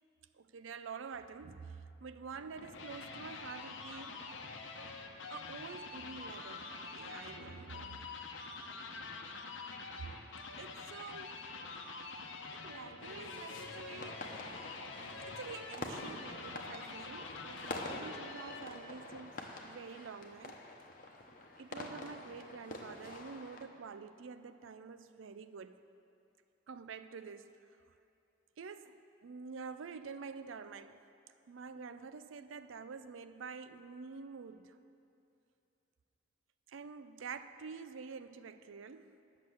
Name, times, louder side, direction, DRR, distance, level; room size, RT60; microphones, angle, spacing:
voice 1, 0.4-4.3 5.3-8.0 10.6-11.4 12.5-14.2 15.3-20.6 21.6-25.8 26.7-27.6 28.6-31.0 31.5-34.8 36.7-39.2, right 5 dB, 90° right, 0.5 m, -48 dB
sound 1, 2.3-18.8, left 4 dB, 80° left, 0.8 m, -46 dB
sound 2, 13.0-23.6, left 2 dB, 45° left, 0.9 m, -47 dB
10.5 x 6.5 x 7.8 m
head